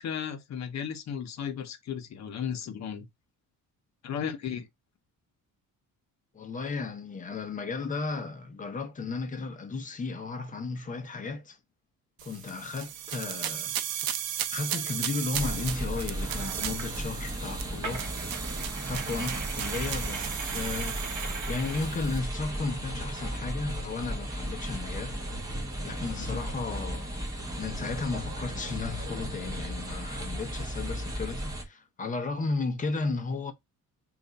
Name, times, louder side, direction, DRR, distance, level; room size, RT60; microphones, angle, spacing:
voice 1, 0.0-3.1 4.0-4.7 26.2-26.4, left 8 dB, 50° left, 0.8 m, -35 dB
voice 2, 6.3-11.6 12.2-13.8 14.5-18.1 18.8-21.1 21.5-25.2 25.8-27.1 27.6-33.5, left 4 dB, 25° left, 0.6 m, -34 dB
sound 1, 12.2-22.2, right 11 dB, 90° right, 0.6 m, -36 dB
sound 2, 15.3-31.6, right 1 dB, 10° right, 0.9 m, -35 dB
sound 3, 15.9-16.9 17.8-21.8, right 4 dB, 60° right, 1.4 m, -40 dB
3.3 x 2.4 x 3.9 m
cardioid pair, 160°, 35 cm